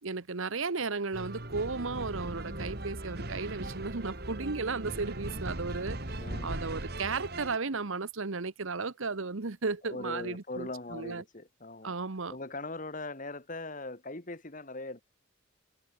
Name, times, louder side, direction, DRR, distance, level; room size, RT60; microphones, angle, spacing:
voice 1, 0.0-11.2 11.8-12.3, right 4 dB, 70° right, 1.1 m, -35 dB
sound 1, 1.1-7.6, right 1 dB, 50° right, 2.9 m, -39 dB
voice 2, 6.2-6.6 9.8-12.0 12.3-15.0, left 2 dB, 40° left, 1.8 m, -40 dB
head